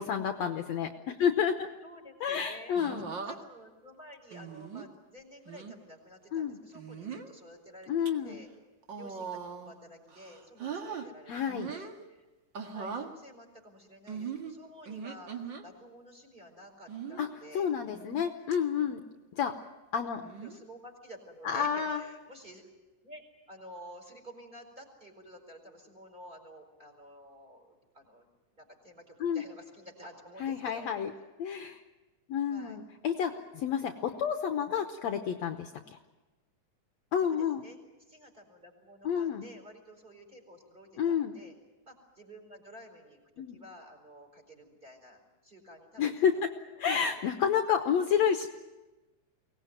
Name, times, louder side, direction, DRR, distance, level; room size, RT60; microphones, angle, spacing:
voice 1, 0.0-1.7 2.2-3.1 6.3-6.6 7.9-8.4 11.3-11.7 17.2-17.3 17.5-19.0 19.3-19.6 19.9-20.2 21.5-22.0 29.2-29.4 30.4-31.1 31.4-31.8 32.3-36.0 37.1-37.6 39.0-39.5 41.0-41.3 43.4-43.6 46.0-46.5 46.8-48.5, left 7 dB, 65° left, 6 dB, 1.9 m, -30 dB
voice 2, 1.8-8.5 8.9-12.2 12.7-17.7 18.8-19.1 20.4-22.6 23.0-28.3 28.5-30.9 32.5-32.8 37.2-41.5 41.8-46.3 46.8-47.3, equal, 15° right, 3 dB, 4.5 m, -52 dB
sound 1, 2.8-3.4 4.3-4.9 5.5-5.7 6.7-7.3 7.8-8.1 8.8-9.8 10.1-11.1 11.5-12.0 12.5-13.1 14.1-15.6 16.9-17.3 17.9-18.2 18.5-18.6 20.2-20.6 21.7-22.0, right 6 dB, 40° right, 2.0 m, -40 dB
24.0 x 18.5 x 9.1 m, 1.1 s
omnidirectional pair, 3.7 m